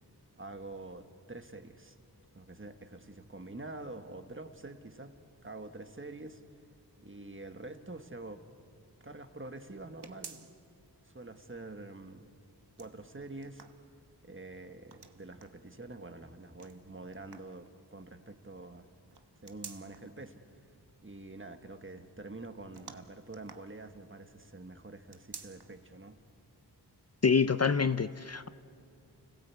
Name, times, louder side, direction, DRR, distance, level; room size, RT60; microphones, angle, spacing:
voice 1, 0.3-1.9 2.3-5.1 5.4-6.4 7.0-8.4 9.0-10.4 11.0-12.3 12.8-13.6 14.2-18.9 19.4-20.4 21.0-26.2, right 2 dB, 30° right, 1.4 m, -46 dB
sound 1, 10.0-10.9 11.3-11.4 12.5-14.3 14.9-15.7 16.6-17.7 19.1-20.2 22.7-24.2 25.0-25.9 26.3-26.4 27.3-27.4, right 5 dB, 70° right, 1.2 m, -51 dB
voice 2, 27.2-28.5, left 5 dB, 40° left, 0.5 m, -26 dB
29.5 x 17.0 x 8.4 m
wide cardioid pair, 75°, 41 cm